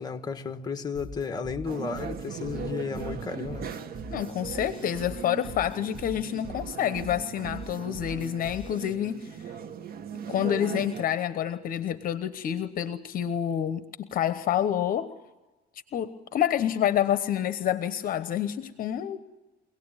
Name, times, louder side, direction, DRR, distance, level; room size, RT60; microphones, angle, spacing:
voice 1, 0.0-3.7, left 5 dB, 25° left, 6 dB, 1.8 m, -33 dB
sound 1, 0.9-8.9, right 1 dB, 30° right, 1.8 m, -42 dB
sound 2, 1.7-11.0, right 7 dB, 65° right, 1.9 m, -39 dB
voice 2, 4.1-9.4 10.3-15.1 15.9-19.2, left 10 dB, 55° left, 11 dB, 1.1 m, -28 dB
24.5 x 18.0 x 9.0 m, 1.2 s
cardioid pair, 110°, 17 cm